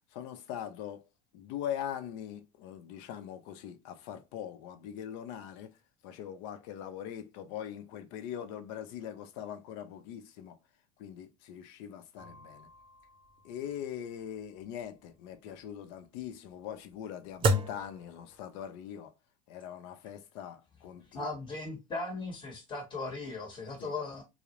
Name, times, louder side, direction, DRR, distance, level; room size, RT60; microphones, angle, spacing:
voice 1, 0.1-1.0 1.3-5.7 6.0-10.6 11.0-12.7 13.4-19.1 19.5-21.3 23.8-23.9, left 10 dB, 60° left, 0.5 m, -41 dB
sound 1, 12.2-18.8, right 1 dB, 30° right, 0.5 m, -36 dB
voice 2, 21.1-24.2, left 3 dB, 30° left, 1.0 m, -38 dB
2.3 x 2.0 x 2.9 m
hypercardioid pair, 85°, 17 cm